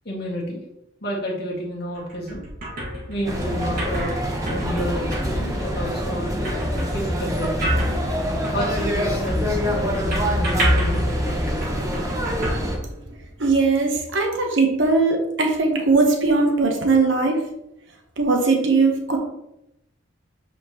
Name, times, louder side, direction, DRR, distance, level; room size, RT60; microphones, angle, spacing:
voice 1, 0.1-0.6 1.0-2.4 3.1-4.2 4.5-6.4 6.9-7.8 8.5-11.6, equal, 50° left, -3 dB, 1.8 m, -30 dB
sound 1, 1.9-13.4, equal, 45° right, 1.8 m, -28 dB
sound 2, 3.2-12.8, equal, 15° right, 1.0 m, -26 dB
voice 2, 13.4-17.4 18.2-19.2, right 3 dB, 65° right, 2 dB, 1.0 m, -19 dB
8.2 x 4.3 x 3.0 m, 0.82 s
head